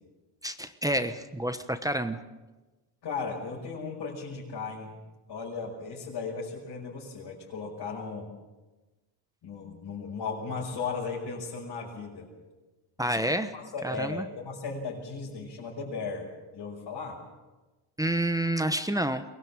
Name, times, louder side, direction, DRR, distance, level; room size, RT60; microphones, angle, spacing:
voice 1, 0.4-2.2 13.0-13.5 13.8-14.3 18.0-19.2, right 1 dB, 5° right, 9 dB, 1.1 m, -28 dB
voice 2, 3.0-4.9 5.3-8.3 9.4-12.3 13.0-13.2 13.5-17.2, left 4 dB, 55° left, -6 dB, 5.7 m, -36 dB
23.5 x 19.5 x 7.5 m, 1.2 s
cardioid pair, 130°, 48 cm